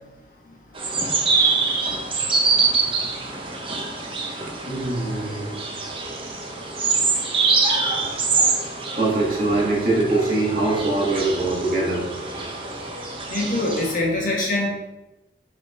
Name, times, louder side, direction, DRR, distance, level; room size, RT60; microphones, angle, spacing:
sound 1, 0.7-14.0, right 4 dB, 30° right, 1.1 m, -25 dB
voice 1, 4.7-5.5 8.9-12.6 13.0-13.1, right 2 dB, 50° right, -5 dB, 2.5 m, -23 dB
voice 2, 13.3-14.7, left 2 dB, 50° left, -3 dB, 1.9 m, -23 dB
5.9 x 5.5 x 4.8 m, 0.96 s
head